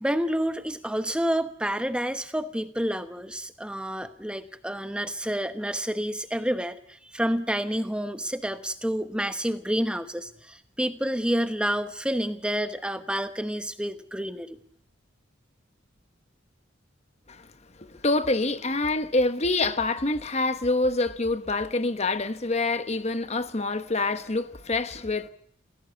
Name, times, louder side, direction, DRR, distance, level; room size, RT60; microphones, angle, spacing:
voice 1, 0.0-14.6, equal, 5° right, 1.0 m, -29 dB
voice 2, 17.8-25.3, left 2 dB, 35° left, 1.0 m, -26 dB
29.0 x 16.5 x 8.1 m
head